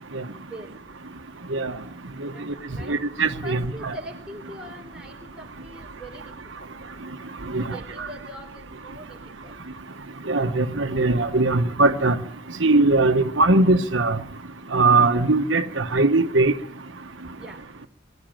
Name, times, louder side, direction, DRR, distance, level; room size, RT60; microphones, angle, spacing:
voice 1, 0.4-0.7 2.3-3.0 3.4-6.7 7.6-9.6 17.4-17.6, right 1 dB, 5° right, 4.1 m, -42 dB
voice 2, 2.9-3.9 7.5-7.8 10.3-12.2 12.6-14.2 14.7-16.5, right 3 dB, 75° right, 1.2 m, -20 dB
23.0 x 13.5 x 9.1 m
head